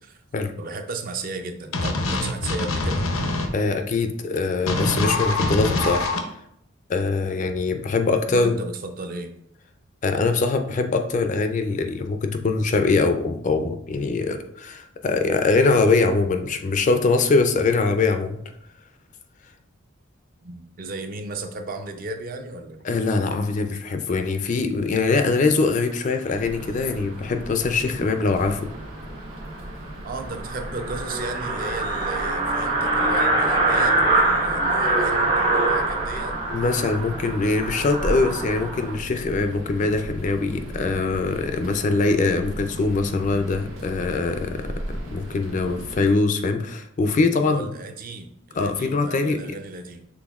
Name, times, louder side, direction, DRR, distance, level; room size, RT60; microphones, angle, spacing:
voice 1, 0.6-3.0 8.3-9.4 20.4-22.9 30.0-36.3 38.0-38.3 47.2-50.1, right 3 dB, 40° right, 6 dB, 0.4 m, -35 dB
sound 1, 1.7-3.5 4.7-6.2, left 2 dB, 80° left, 0.6 m, -24 dB
voice 2, 3.5-6.1 6.9-8.6 10.0-18.4 22.8-28.6 36.5-44.7 45.1-47.7 48.6-49.4, left 3 dB, 35° left, 7 dB, 0.3 m, -22 dB
sound 2, 26.3-46.1, right 1 dB, 75° right, 0.9 m, -37 dB
sound 3, 29.0-29.1 29.5-29.6 29.9-30.0 30.2-38.9, right 2 dB, 60° right, 1.3 m, -24 dB
6.1 x 3.4 x 2.3 m, 0.75 s
head